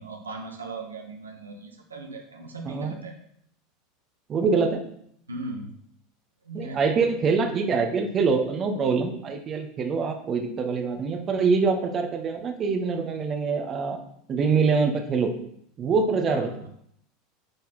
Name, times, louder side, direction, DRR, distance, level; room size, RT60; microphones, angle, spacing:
voice 1, 0.0-3.1 5.3-5.7 6.4-6.8 16.3-16.7, right 2 dB, 85° right, 3 dB, 0.9 m, -38 dB
voice 2, 2.6-3.0 4.3-4.8 6.5-14.0 14.3-15.3 15.8-16.5, right 5 dB, 35° right, 5 dB, 1.1 m, -24 dB
8.8 x 4.2 x 4.2 m, 0.70 s
figure-of-eight pair, 80°, 0 cm